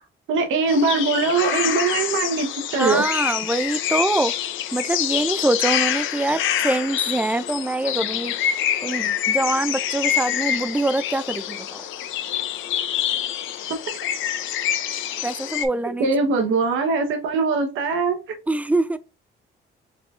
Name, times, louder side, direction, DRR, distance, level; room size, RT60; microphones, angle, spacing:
voice 1, 0.3-3.0 13.9-14.0 16.0-18.2, right 4 dB, 85° right, 1.0 m, -21 dB
sound 1, 0.7-15.7, left 10 dB, 80° left, 0.6 m, -26 dB
voice 2, 2.7-4.3 4.7-8.3 8.8-11.8 15.2-16.1 18.5-19.0, right 2 dB, 5° right, 0.4 m, -24 dB
4.8 x 3.5 x 2.4 m
cardioid pair, 90°, 20 cm